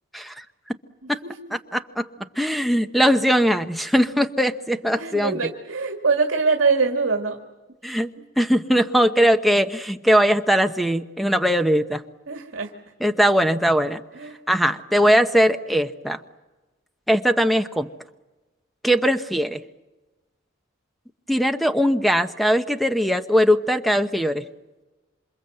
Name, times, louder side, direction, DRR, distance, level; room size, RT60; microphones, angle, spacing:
voice 1, 0.1-0.4 1.1-1.2 1.5-2.1 2.4-5.4 7.8-8.1 8.4-12.0 13.0-14.0 14.5-16.2 17.1-17.9 18.8-19.6 21.3-24.4, equal, ahead, 9 dB, 0.9 m, -20 dB
voice 2, 5.0-7.4 12.3-12.7 14.1-14.4, right 4 dB, 70° right, 3 dB, 2.0 m, -23 dB
27.5 x 26.0 x 7.8 m, 1.1 s
head